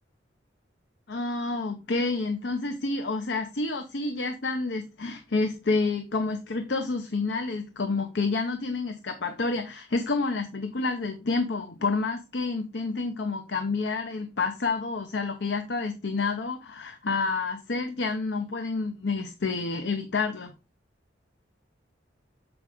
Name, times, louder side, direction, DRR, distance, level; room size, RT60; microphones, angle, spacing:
voice 1, 1.1-20.5, left 3 dB, 65° left, 7 dB, 0.8 m, -29 dB
7.9 x 4.7 x 3.5 m, 0.28 s
head